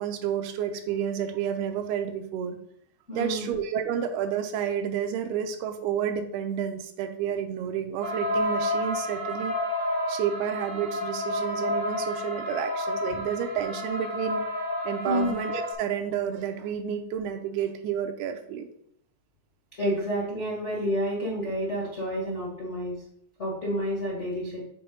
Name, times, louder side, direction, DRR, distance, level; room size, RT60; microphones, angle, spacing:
voice 1, 0.0-2.6 3.1-9.5 9.8-14.4 14.8-18.7, right 8 dB, 85° right, 7 dB, 2.5 m, -30 dB
voice 2, 3.1-3.5 15.0-15.3 19.8-23.0 23.4-24.6, equal, 80° left, -5 dB, 0.6 m, -29 dB
sound 1, 8.0-15.7, left 1 dB, 55° right, 0.8 m, -30 dB
7.9 x 4.6 x 3.8 m, 0.71 s
omnidirectional pair, 4.5 m